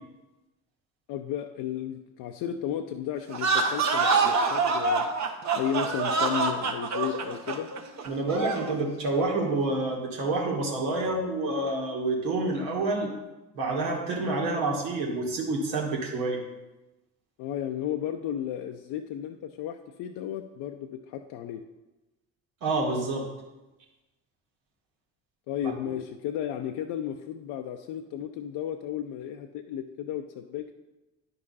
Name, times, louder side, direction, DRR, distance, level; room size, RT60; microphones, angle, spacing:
voice 1, 1.1-5.1 5.6-7.7 17.4-21.6 25.5-30.7, left 10 dB, 60° left, 5 dB, 0.6 m, -34 dB
sound 1, 3.3-8.7, right 4 dB, 40° right, 1.2 m, -26 dB
voice 2, 8.1-13.1 13.6-16.4 22.6-23.3 25.6-25.7, right 2 dB, 75° right, -1 dB, 1.9 m, -28 dB
10.0 x 5.4 x 4.1 m, 1.1 s
hypercardioid pair, 55°, 43 cm